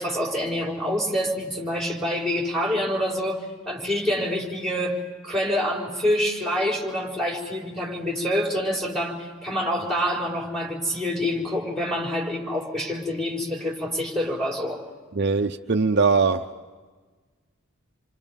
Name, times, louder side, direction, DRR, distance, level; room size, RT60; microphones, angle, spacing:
voice 1, 0.0-14.8, equal, ahead, -2 dB, 4.9 m, -26 dB
voice 2, 15.1-16.5, right 4 dB, 55° right, 5 dB, 0.8 m, -21 dB
29.0 x 25.0 x 5.4 m, 1.4 s
head